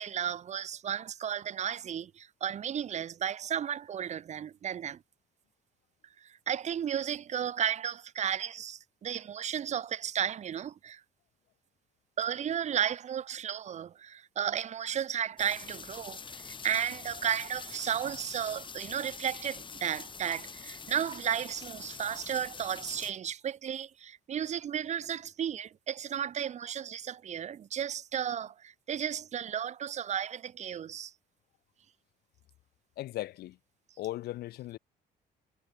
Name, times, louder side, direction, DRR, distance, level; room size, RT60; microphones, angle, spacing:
voice 1, 0.0-5.0 6.2-11.0 12.2-31.1, right 9 dB, 45° right, 0.9 m, -34 dB
sound 1, 15.4-23.1, left 5 dB, 30° left, 5.0 m, -45 dB
voice 2, 33.0-33.6 34.0-34.8, left 15 dB, 70° left, 0.8 m, -37 dB
cardioid pair, 110°, 17 cm